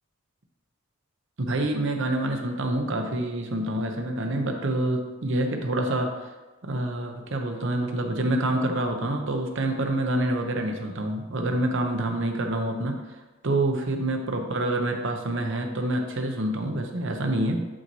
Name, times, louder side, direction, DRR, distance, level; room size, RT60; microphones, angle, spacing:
voice 1, 1.4-6.1 6.6-13.2 13.4-17.7, right 1 dB, 55° right, 4 dB, 0.7 m, -27 dB
8.6 x 3.1 x 4.1 m, 1.2 s
head